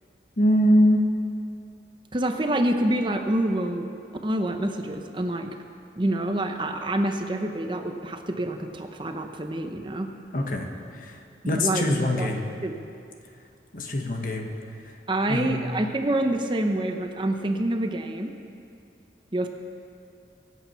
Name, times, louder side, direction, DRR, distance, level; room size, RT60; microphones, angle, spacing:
voice 1, 0.4-1.0 10.3-10.7 11.0-11.2 11.4-12.4 13.7-14.5 15.3-15.6, equal, 50° left, 2 dB, 1.5 m, -22 dB
voice 2, 2.1-3.9 4.2-5.6 6.0-10.1 11.5-12.3 12.6-12.8 15.1-18.3 19.3-19.5, right 1 dB, 25° right, 5 dB, 0.8 m, -27 dB
23.5 x 8.5 x 5.7 m, 2.5 s
head